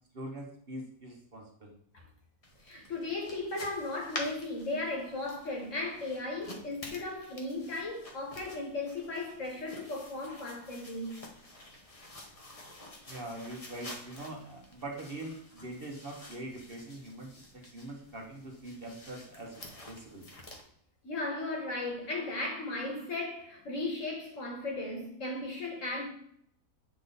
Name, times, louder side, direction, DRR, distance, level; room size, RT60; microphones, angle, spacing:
voice 1, 0.1-1.7 13.1-20.3, right 1 dB, 45° right, 1.1 m, -43 dB
sound 1, 2.4-20.6, left 1 dB, 25° left, 1.0 m, -49 dB
voice 2, 2.6-11.1 21.0-26.1, left 2 dB, 55° left, 1.7 m, -36 dB
8.3 x 3.7 x 3.9 m
omnidirectional pair, 1.6 m